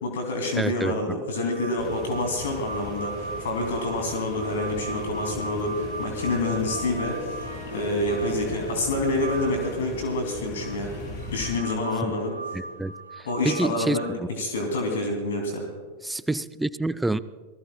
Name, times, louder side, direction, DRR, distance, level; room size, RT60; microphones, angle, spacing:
voice 1, 0.0-7.4 7.7-10.9 11.3-12.3 13.2-15.7, left 2 dB, 60° left, 2.6 m, -27 dB
voice 2, 0.6-1.2 12.0-12.1 12.5-14.3 16.0-17.2, right 2 dB, 5° right, 0.4 m, -28 dB
sound 1, 1.3-9.8 10.6-14.1, right 4 dB, 75° right, 0.9 m, -39 dB
sound 2, 1.8-11.5, left 2 dB, 40° left, 5.0 m, -39 dB
Harp, 2.4-15.2, left 1 dB, 85° left, 4.1 m, -41 dB
27.5 x 19.5 x 2.2 m
figure-of-eight pair, 90°, 0 cm